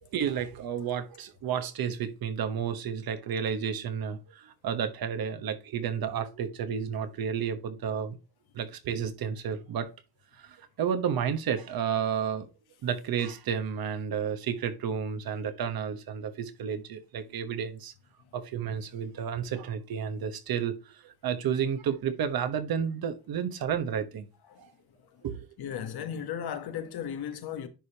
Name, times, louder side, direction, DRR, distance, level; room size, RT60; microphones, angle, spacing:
voice 1, 0.0-8.2 8.5-9.9 10.3-12.5 12.8-17.9 18.3-24.3 24.6-24.7 25.2-25.5, right 7 dB, 60° right, 1.1 m, -31 dB
voice 2, 25.6-27.7, left 8 dB, 70° left, 1.3 m, -35 dB
10.5 x 5.0 x 2.8 m
cardioid pair, 140°, 40 cm